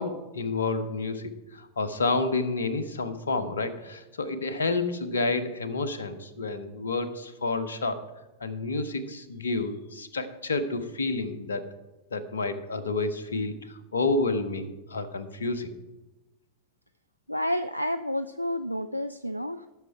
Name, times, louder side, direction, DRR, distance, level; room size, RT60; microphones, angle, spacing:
voice 1, 0.0-8.0 8.4-11.6 12.1-15.7, left 3 dB, 70° left, 11 dB, 0.9 m, -29 dB
voice 2, 17.3-19.7, left 1 dB, 90° left, 11 dB, 0.3 m, -30 dB
13.0 x 6.5 x 4.7 m, 1.1 s
figure-of-eight pair, 90°, 0 cm